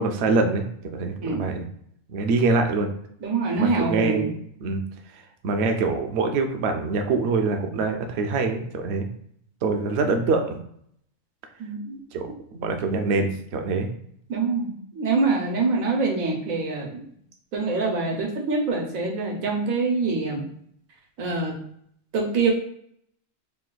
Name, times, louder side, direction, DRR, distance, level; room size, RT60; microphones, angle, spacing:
voice 1, 0.0-1.7 2.1-2.9 3.6-4.3 4.6-4.8 5.4-9.1 9.6-10.6 12.1-13.9, right 3 dB, 60° right, 5 dB, 0.8 m, -24 dB
voice 2, 1.2-1.6 3.2-4.3 11.6-12.0 14.3-17.0 17.5-20.4 21.2-21.5 22.1-22.5, right 4 dB, 90° right, 0 dB, 1.4 m, -25 dB
3.4 x 2.5 x 3.8 m, 0.67 s
omnidirectional pair, 1.4 m